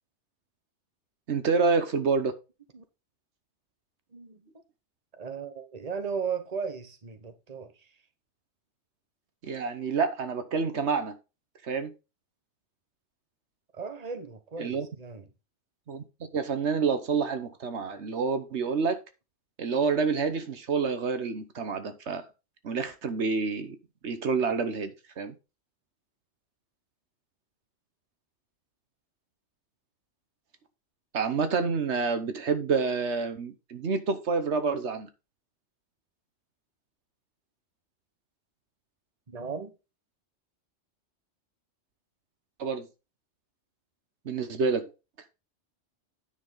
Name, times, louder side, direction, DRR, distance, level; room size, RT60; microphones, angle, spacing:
voice 1, 1.3-2.3 9.4-11.2 11.6-11.9 14.6-14.9 15.9-16.0 16.3-19.0 19.6-22.2 22.6-23.8 24.0-25.3 31.1-35.1 42.6-42.9 44.2-44.9, right 5 dB, 75° right, 1.3 m, -28 dB
voice 2, 4.1-4.6 5.1-7.9 13.7-15.3 39.3-39.7, right 6 dB, 35° right, 1.3 m, -36 dB
9.7 x 5.9 x 3.9 m
omnidirectional pair, 1.2 m